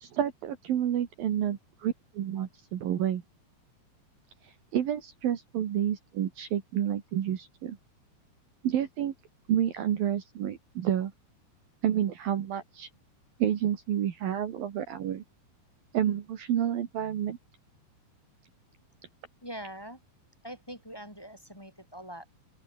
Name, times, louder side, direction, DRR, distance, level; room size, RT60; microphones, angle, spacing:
voice 1, 0.0-3.2 4.7-7.8 8.6-9.1 9.5-11.1 11.8-12.9 13.4-15.2 15.9-17.4, right 10 dB, 65° right, 3.4 m, -29 dB
voice 2, 19.4-20.0 20.4-22.3, equal, 5° left, 4.5 m, -43 dB
open air
omnidirectional pair, 4.8 m